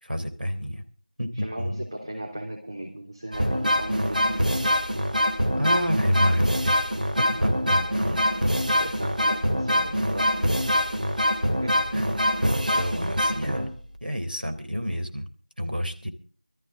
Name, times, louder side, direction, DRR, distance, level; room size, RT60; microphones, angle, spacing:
voice 1, 0.0-0.8 1.2-1.8 5.6-6.8 7.2-8.2 11.9-12.1 12.5-13.7 14.0-15.3 15.6-16.1, equal, 85° right, 6 dB, 3.5 m, -28 dB
voice 2, 1.3-4.6 6.3-6.5 7.3-8.3 8.6-10.6 11.5-11.8, right 1 dB, 35° right, -1 dB, 3.4 m, -38 dB
sound 1, 3.3-14.0, equal, 65° right, 2.8 m, -24 dB
23.0 x 13.5 x 3.5 m, 0.38 s
figure-of-eight pair, 175°, 5 cm